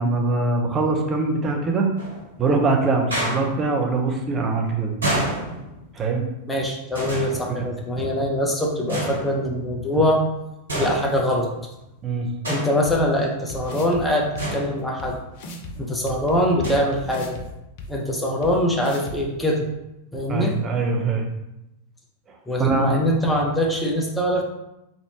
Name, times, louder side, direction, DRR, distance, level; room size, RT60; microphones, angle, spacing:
voice 1, 0.0-1.9 2.4-4.9 5.9-6.3 7.5-7.7 12.0-12.3 20.3-21.3 22.6-23.0, right 3 dB, 25° right, 1 dB, 0.8 m, -22 dB
sound 1, 2.0-2.4 3.1-3.7 5.0-6.0 6.9-8.0 8.9-9.8 10.7-11.6 12.4-13.1 14.4-15.2 16.6-17.0, right 1 dB, 75° right, 1.2 m, -29 dB
voice 2, 6.5-10.2 10.8-11.5 12.5-15.2 15.8-17.4 17.9-19.6 20.1-20.6 22.5-24.4, left 1 dB, 10° left, -1 dB, 0.9 m, -23 dB
sound 2, 12.9-13.0 13.5-14.0 14.4-14.5 15.0-15.1 15.4-15.7 16.1-17.4 17.8-17.9 18.4-18.5 18.8-19.2, left 2 dB, 50° left, 0.6 m, -36 dB
4.1 x 3.3 x 2.9 m, 0.90 s
figure-of-eight pair, 90°, 0 cm